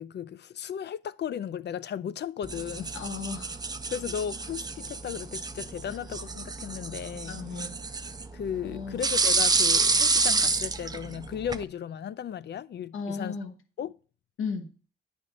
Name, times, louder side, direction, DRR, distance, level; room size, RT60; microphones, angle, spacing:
voice 1, 0.0-3.0 3.9-7.7 8.3-13.4 13.8-14.0, left 8 dB, 55° left, 0.4 m, -35 dB
sound 1, 2.4-11.6, right 4 dB, 20° right, 0.4 m, -29 dB
voice 2, 2.9-3.6 7.3-7.8 8.6-9.0 12.9-13.5 14.4-14.7, left 5 dB, 75° left, 1.2 m, -35 dB
9.7 x 3.5 x 6.3 m
wide cardioid pair, 125°, 21 cm